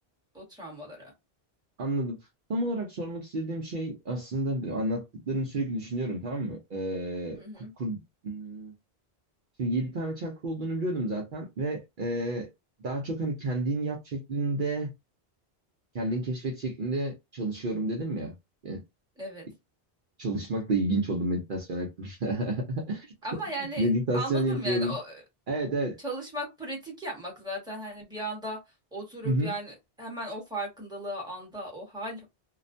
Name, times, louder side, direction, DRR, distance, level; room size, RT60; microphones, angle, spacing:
voice 1, 0.3-1.1 7.3-7.7 19.2-19.5 23.2-25.2 26.0-32.2, right 1 dB, 5° right, 1.0 m, -37 dB
voice 2, 1.8-2.2 2.5-7.4 7.8-8.7 9.6-12.5 12.8-14.9 15.9-18.3 18.6-18.8 20.2-23.1 23.8-24.9 25.5-26.0 29.2-29.5, right 1 dB, 60° right, 0.7 m, -30 dB
2.4 x 2.1 x 2.5 m
omnidirectional pair, 1.0 m